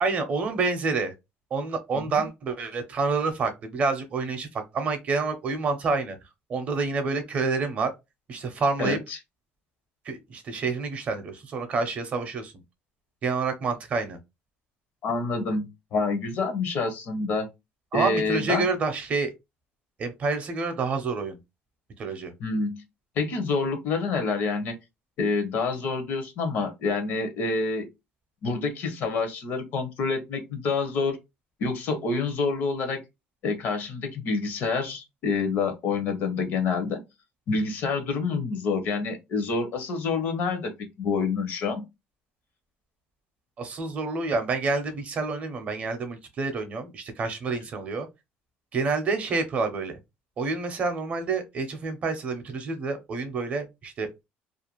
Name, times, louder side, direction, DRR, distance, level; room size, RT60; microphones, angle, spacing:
voice 1, 0.0-1.1 1.5-6.2 6.5-7.9 8.3-9.0 10.1-12.5 13.2-14.2 17.9-19.3 20.0-21.4 22.0-22.3 43.6-48.1 48.7-49.9 50.4-54.2, right 4 dB, 35° right, 0.5 m, -28 dB
voice 2, 8.8-9.2 15.0-17.5 17.9-18.7 22.4-22.8 23.2-24.7 25.2-27.9 28.4-31.2 31.6-33.0 33.4-37.0 37.5-40.7 41.0-41.8, left 4 dB, 50° left, 0.6 m, -27 dB
2.4 x 2.2 x 2.8 m
cardioid pair, 165°, 4 cm